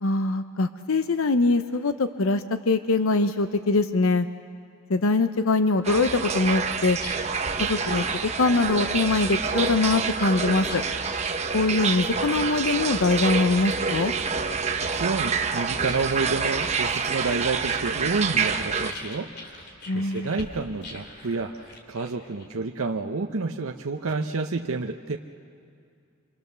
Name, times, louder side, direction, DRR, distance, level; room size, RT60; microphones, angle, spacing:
voice 1, 0.0-4.3 4.9-7.0 7.6-10.8 11.5-14.1 19.9-20.3, left 3 dB, 80° left, 10 dB, 0.7 m, -23 dB
sound 1, 5.8-18.9, right 5 dB, 30° right, 1.0 m, -27 dB
sound 2, 7.0-22.7, left 2 dB, 50° left, 2.9 m, -45 dB
voice 2, 14.8-19.3 19.9-25.2, right 4 dB, 80° right, 3 dB, 0.8 m, -29 dB
27.5 x 25.0 x 6.8 m, 2.4 s
head